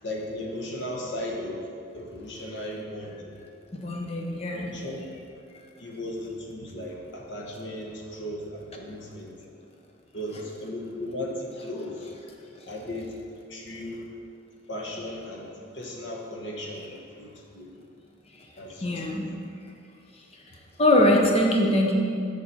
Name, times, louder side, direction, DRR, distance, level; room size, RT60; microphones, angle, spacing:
voice 1, 0.0-1.7 1.9-3.4 4.3-5.1 5.8-9.3 10.1-12.1 12.7-13.1 13.5-14.0 14.7-17.7 18.6-19.0, left 1 dB, 70° left, -1 dB, 1.1 m, -36 dB
voice 2, 3.7-4.7 18.8-19.3 20.8-21.9, left 1 dB, 30° left, 0 dB, 0.8 m, -22 dB
6.8 x 6.0 x 4.3 m, 2.4 s
head